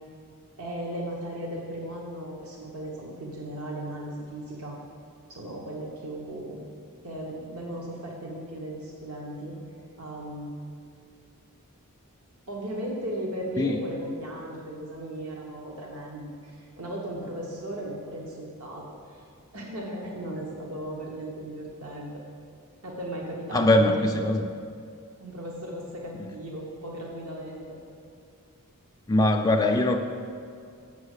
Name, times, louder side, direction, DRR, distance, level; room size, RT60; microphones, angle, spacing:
voice 1, 0.6-4.8 5.3-6.6 7.0-9.6 10.0-10.5 12.5-19.2 19.5-22.2 22.8-24.2 25.2-27.8, right 1 dB, 70° right, -2 dB, 1.0 m, -36 dB
voice 2, 23.5-24.5 29.1-30.0, left 1 dB, 15° left, 1 dB, 0.3 m, -21 dB
7.2 x 5.6 x 6.4 m, 2.3 s
head